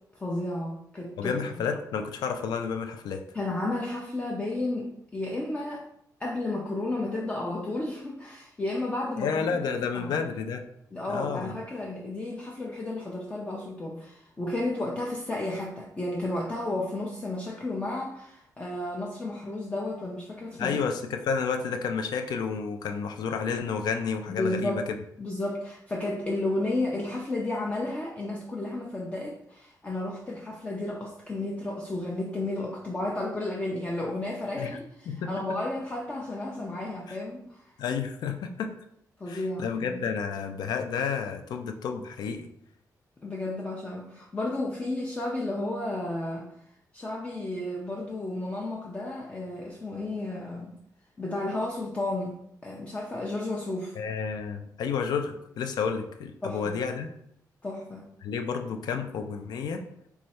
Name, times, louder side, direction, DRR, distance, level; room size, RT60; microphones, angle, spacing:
voice 1, 0.1-1.7 3.3-5.9 6.2-10.3 10.9-20.8 24.3-24.8 25.2-37.7 39.2-40.1 43.2-46.5 46.9-50.7 51.2-54.0 56.4-56.8 57.6-58.1, left 2 dB, 20° left, -2 dB, 0.4 m, -32 dB
voice 2, 1.2-3.2 9.2-10.6 11.1-11.5 20.6-25.0 34.6-34.7 35.1-35.3 37.1-37.2 37.8-38.7 39.3-42.5 54.0-57.1 58.2-59.8, left 6 dB, 85° left, 6 dB, 0.4 m, -31 dB
3.1 x 2.3 x 4.1 m, 0.75 s
wide cardioid pair, 160°, 7 cm